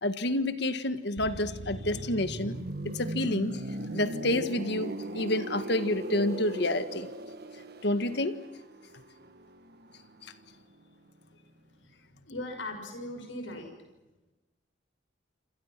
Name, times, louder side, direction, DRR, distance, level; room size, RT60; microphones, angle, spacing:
voice 1, 0.0-2.6 2.8-3.6 3.9-7.1 7.8-8.4, left 1 dB, 60° left, 10 dB, 1.7 m, -29 dB
sound 1, 1.2-10.8 11.1-11.3, right 1 dB, 55° right, 1.5 m, -39 dB
voice 2, 11.8-13.7, left 1 dB, 85° left, 4 dB, 6.3 m, -39 dB
28.0 x 28.0 x 6.1 m, 1.1 s
head